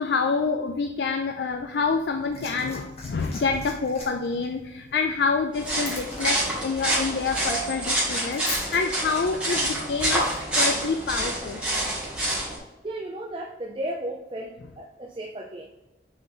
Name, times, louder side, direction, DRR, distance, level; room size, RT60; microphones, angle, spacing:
voice 1, 0.0-10.3 10.6-11.6, left 4 dB, 70° left, 6 dB, 0.4 m, -27 dB
Liquid, 1.9-8.8 9.9-10.0, left 3 dB, 35° left, 1.5 m, -42 dB
sound 1, 5.5-12.6, right 1 dB, 5° right, 2.0 m, -27 dB
voice 2, 12.8-15.7, right 1 dB, 30° right, 1 dB, 0.5 m, -34 dB
6.6 x 4.0 x 3.8 m, 1.0 s
head